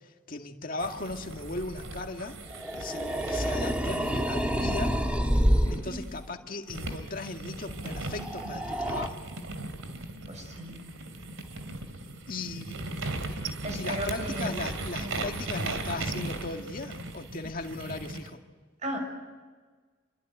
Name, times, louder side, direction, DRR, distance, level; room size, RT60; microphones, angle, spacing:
voice 1, 0.3-2.4 2.7-5.0 5.7-9.2 12.3-12.8 13.7-18.4, left 2 dB, 45° left, 3 dB, 2.0 m, -37 dB
sound 1, 0.8-6.2 6.7-18.3, right 2 dB, 80° right, 2.9 m, -38 dB
sound 2, 2.5-5.8 7.9-9.1, equal, 5° right, 1.9 m, -28 dB
voice 2, 5.6-6.0 10.2-10.8 13.6-14.6 15.0-15.2 18.8-19.0, right 1 dB, 35° right, 3 dB, 6.5 m, -36 dB
28.0 x 22.0 x 9.3 m, 1.4 s
head